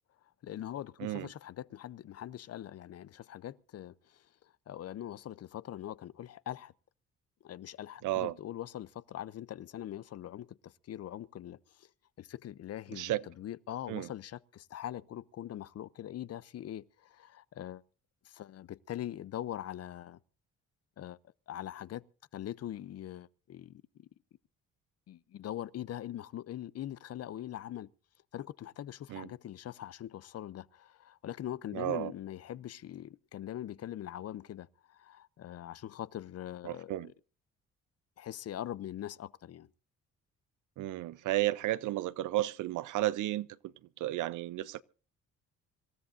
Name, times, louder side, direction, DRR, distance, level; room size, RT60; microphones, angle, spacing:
voice 1, 0.4-6.7 7.4-11.9 12.2-17.8 18.2-20.2 21.0-21.2 21.5-22.0 22.3-24.1 25.1-27.9 28.3-37.1 38.2-39.7, left 12 dB, 55° left, 0.6 m, -42 dB
voice 2, 8.0-8.4 12.9-13.2 13.9-14.1 29.1-29.3 31.7-32.1 36.7-37.1 40.8-44.8, right 15 dB, 80° right, 0.6 m, -33 dB
26.0 x 13.5 x 2.6 m
cardioid pair, 90°, 30 cm